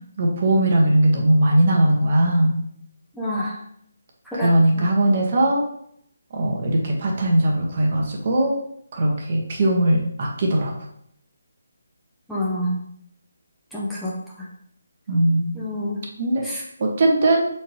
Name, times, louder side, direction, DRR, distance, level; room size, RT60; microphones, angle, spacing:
voice 1, 0.2-2.6 4.3-5.6 6.3-8.6 8.9-10.7 15.1-15.6 16.2-16.5 16.8-17.5, right 1 dB, 40° right, 0 dB, 1.3 m, -19 dB
voice 2, 3.2-3.6 4.3-4.5 4.8-4.9 12.3-12.8 13.7-14.2 15.5-16.0 16.4-16.6, left 1 dB, ahead, -8 dB, 0.9 m, -27 dB
6.6 x 4.3 x 3.4 m, 0.70 s
figure-of-eight pair, 150°, 0 cm